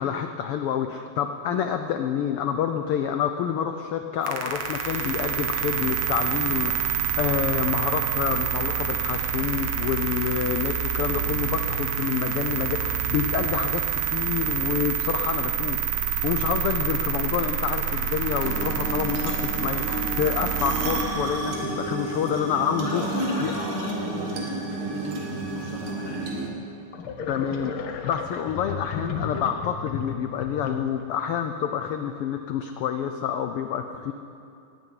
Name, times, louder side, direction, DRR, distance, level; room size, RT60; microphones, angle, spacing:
voice 1, 0.0-23.5 27.3-34.1, left 8 dB, 85° left, 7 dB, 1.2 m, -28 dB
sound 1, 4.2-21.0, right 8 dB, 60° right, 2.3 m, -27 dB
sound 2, 18.4-26.5, right 3 dB, 80° right, 3.2 m, -32 dB
voice 2, 22.8-26.4, left 2 dB, 15° left, -6 dB, 2.7 m, -34 dB
sound 3, 26.2-26.3 26.9-31.1, left 6 dB, 65° left, 1.5 m, -33 dB
17.0 x 9.3 x 9.2 m, 2.5 s
omnidirectional pair, 3.3 m